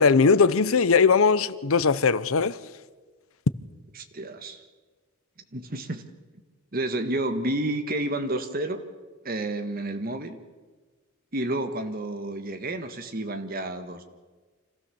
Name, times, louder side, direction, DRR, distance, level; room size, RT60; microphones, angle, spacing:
voice 1, 0.0-2.6, left 5 dB, 75° left, 0.7 m, -20 dB
voice 2, 4.1-4.6 5.5-6.0 6.7-8.8 9.2-10.4 11.3-14.0, right 1 dB, 45° right, 1.6 m, -30 dB
26.0 x 16.0 x 7.1 m
head